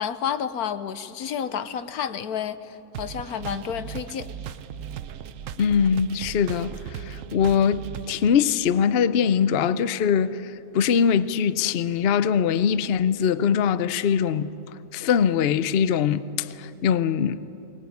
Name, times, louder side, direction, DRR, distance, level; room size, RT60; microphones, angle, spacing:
voice 1, 0.0-4.3, left 8 dB, 80° left, 1.3 m, -30 dB
sound 1, 2.9-8.3, right 9 dB, 65° right, 1.0 m, -37 dB
voice 2, 5.6-14.5 14.9-17.4, left 7 dB, 55° left, 0.7 m, -22 dB
23.0 x 19.0 x 9.4 m
omnidirectional pair, 1.6 m